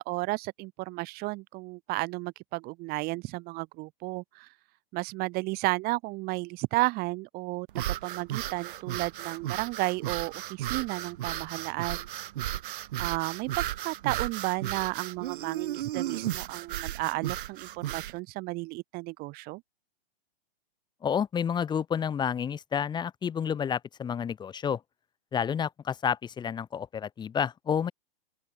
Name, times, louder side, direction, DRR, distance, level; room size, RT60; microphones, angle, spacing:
voice 1, 0.0-4.5 4.9-12.1 13.0-19.6, right 23 dB, 30° right, 3.8 m, -33 dB
sound 1, 7.7-18.2, right 13 dB, 55° right, 3.2 m, -34 dB
voice 2, 21.0-24.8 25.3-27.9, left 7 dB, 15° left, 4.3 m, -30 dB
open air
hypercardioid pair, 150°, 30 cm